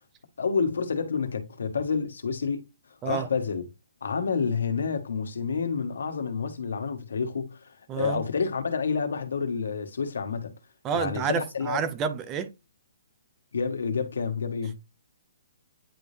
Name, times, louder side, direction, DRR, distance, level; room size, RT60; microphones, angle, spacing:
voice 1, 0.4-2.6 3.0-3.7 4.0-10.5 10.9-11.8 13.5-14.8, left 5 dB, 75° left, 1.5 m, -29 dB
voice 2, 7.9-8.2 10.8-12.5, right 7 dB, 10° right, 0.5 m, -29 dB
9.9 x 3.4 x 2.8 m
hypercardioid pair, 180°, 0 cm